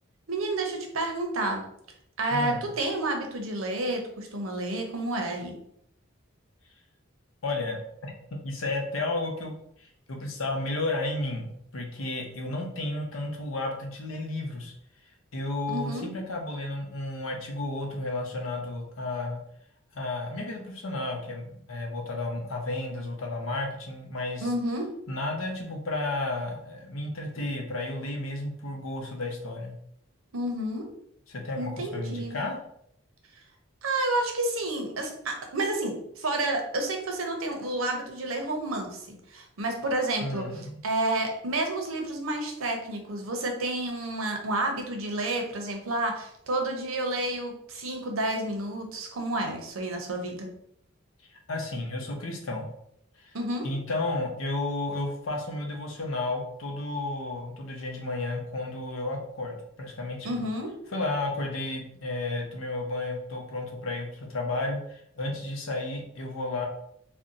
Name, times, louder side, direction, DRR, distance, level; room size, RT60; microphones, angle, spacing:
voice 1, 0.3-1.6 2.2-5.5 15.7-16.1 24.4-24.9 30.3-30.9 31.6-32.4 33.8-50.5 53.3-53.7 60.2-60.7, right 2 dB, 85° right, 3 dB, 0.7 m, -30 dB
voice 2, 2.3-2.6 7.4-9.5 10.1-14.7 15.3-19.4 19.9-24.5 25.1-29.7 31.3-32.6 40.2-40.8 51.5-52.7 53.2-53.4 53.6-60.3 60.9-66.7, left 2 dB, 70° left, 1 dB, 0.7 m, -32 dB
2.6 x 2.1 x 3.8 m, 0.72 s
head